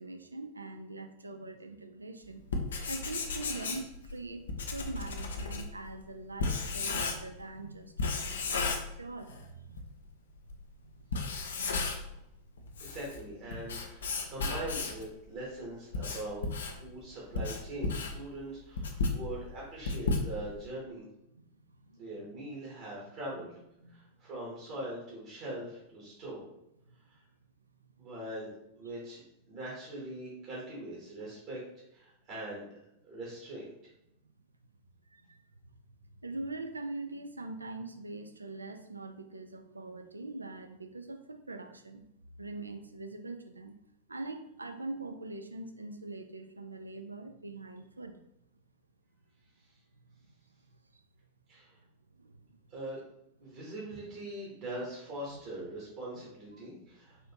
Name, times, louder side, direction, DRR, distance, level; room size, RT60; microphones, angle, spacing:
voice 1, 0.0-2.4 2.9-4.5 4.7-10.0 10.3-12.1 12.6-12.7 16.9-17.1 18.9-19.2 21.3-22.3 23.3-23.5 23.8-24.0 26.9-27.0 34.2-34.3 35.1-35.4 36.2-42.0 42.4-43.7 44.1-48.2 50.2-50.3 50.9-51.0 51.8-51.9 52.2-52.6 53.5-53.7 55.3-55.4 56.1-56.2, right 2 dB, 80° right, 7 dB, 0.3 m, -43 dB
Writing, 2.4-7.5 8.0-9.4 9.8-9.9 10.5-10.6 11.0-12.2 12.6-15.1 15.6-20.7, left 3 dB, 65° left, 0.4 m, -34 dB
voice 2, 12.8-21.1 22.0-23.5 23.9-26.4 27.1-27.2 28.0-28.5 28.8-29.2 29.5-31.6 31.9-32.7 33.0-33.7 51.5-51.8 52.7-53.0 53.4-57.2, right 1 dB, 45° right, -5 dB, 1.2 m, -42 dB
4.1 x 2.6 x 2.9 m, 0.82 s
figure-of-eight pair, 90°, 0 cm